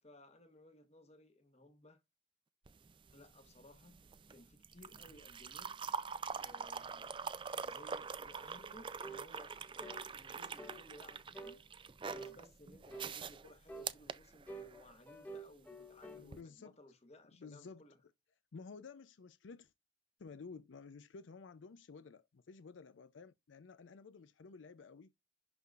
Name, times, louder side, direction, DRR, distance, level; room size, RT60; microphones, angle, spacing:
voice 1, 0.0-2.0 3.1-5.7 6.3-11.7 12.1-18.0, left 1 dB, 35° left, 1.3 m, -60 dB
sound 1, 2.7-15.0 16.2-16.4, right 5 dB, 25° right, 0.4 m, -44 dB
sound 2, 9.0-9.3 9.8-10.1 10.6-10.8 11.3-11.6 12.1-12.4 12.9-13.2 13.7-13.9 14.5-16.3, right 2 dB, 10° left, 1.0 m, -49 dB
voice 2, 16.1-16.7 17.3-17.8 18.5-19.7 20.2-25.1, left 4 dB, 80° left, 0.5 m, -53 dB
11.0 x 3.9 x 2.4 m
head